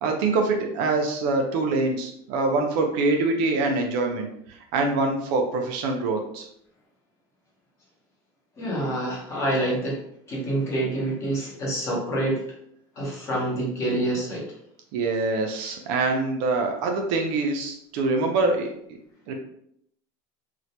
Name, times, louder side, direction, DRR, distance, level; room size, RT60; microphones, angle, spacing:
voice 1, 0.0-6.5 14.9-18.7 19.3-19.4, right 3 dB, 50° right, 3 dB, 0.4 m, -24 dB
voice 2, 8.6-12.4 13.0-14.5, right 1 dB, 25° left, -4 dB, 0.7 m, -27 dB
2.1 x 2.1 x 2.7 m, 0.70 s
cardioid pair, 175°, 12 cm